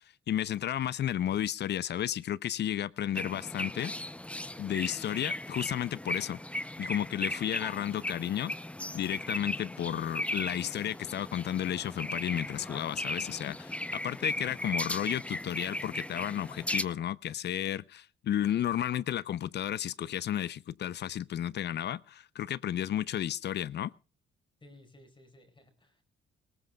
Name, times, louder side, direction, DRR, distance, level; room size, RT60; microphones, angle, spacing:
voice 1, 0.3-3.9 4.6-6.4 6.8-8.5 8.9-23.9, left 11 dB, 60° left, 0.6 m, -33 dB
sound 1, 3.1-16.8, left 1 dB, 5° left, 0.7 m, -37 dB
voice 2, 24.6-26.0, left 1 dB, 25° left, 5.1 m, -57 dB
20.0 x 18.5 x 2.3 m
cardioid pair, 90°, 20 cm